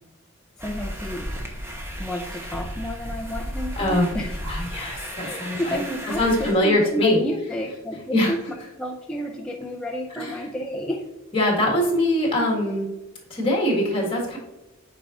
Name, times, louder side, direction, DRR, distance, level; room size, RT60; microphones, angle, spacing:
voice 1, 0.6-1.3 2.0-4.5 5.2-11.1, equal, 5° left, -2 dB, 0.5 m, -31 dB
sound 1, 0.6-6.5, equal, 10° right, 0.9 m, -34 dB
voice 2, 3.8-4.1 4.4-5.8 6.2-7.2 8.1-8.3 10.2-10.3 11.3-12.9 13.3-14.4, left 1 dB, 25° left, -2 dB, 1.7 m, -22 dB
8.7 x 4.7 x 2.5 m, 1.0 s
head